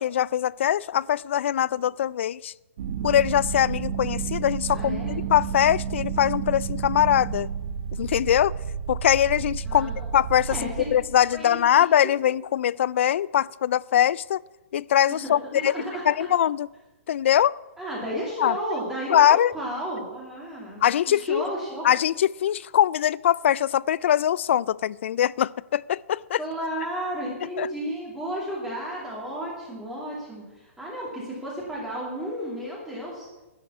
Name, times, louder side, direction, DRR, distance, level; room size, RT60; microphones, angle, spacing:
voice 1, 0.0-2.5 3.0-7.5 8.0-8.5 8.9-14.4 14.7-15.7 16.1-16.7 17.1-17.6 18.4-18.5 19.1-19.5 20.8-21.5 21.8-26.4 27.6-27.7, left 10 dB, 60° left, 0.3 m, -22 dB
sound 1, 2.8-11.5, right 7 dB, 55° right, 1.1 m, -31 dB
voice 2, 4.7-5.2 9.6-10.1 10.5-10.7 11.3-12.1 15.1-16.0 17.8-20.8 21.1-21.9 26.4-33.3, right 1 dB, 5° right, 2.5 m, -33 dB
11.5 x 8.3 x 8.3 m
hypercardioid pair, 165°, 8 cm